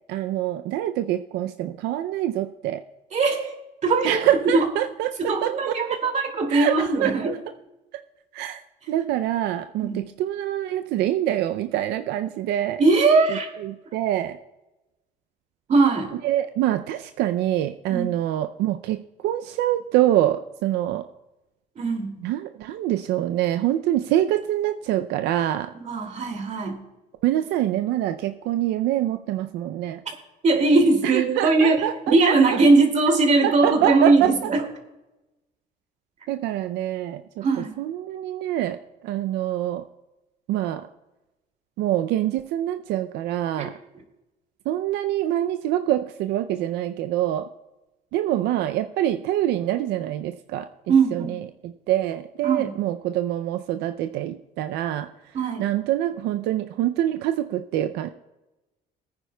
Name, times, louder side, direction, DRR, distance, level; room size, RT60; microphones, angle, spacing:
voice 1, 0.1-2.8 4.0-5.7 6.5-7.4 8.3-8.6 8.9-12.8 13.3-14.4 16.2-19.0 19.2-21.0 22.2-25.7 27.2-30.0 31.1-32.6 33.4-34.3 36.3-37.4 37.8-38.8 39.0-39.8 40.5-40.9 41.8-43.7 44.7-47.5 48.1-50.7 51.1-55.1 55.6-58.1, right 12 dB, 85° right, 9 dB, 0.5 m, -25 dB
voice 2, 3.1-3.5 3.8-4.2 4.5-4.7 5.2-7.3 9.8-10.1 12.8-13.5 15.7-16.1 17.9-18.1 21.8-22.2 25.7-26.8 30.4-34.6 37.4-37.8 43.6-43.7 50.9-51.4 52.4-52.7 55.3-55.6, right 3 dB, 45° right, 3 dB, 2.5 m, -20 dB
21.0 x 9.6 x 2.2 m, 1.0 s
cardioid pair, 110°, 17 cm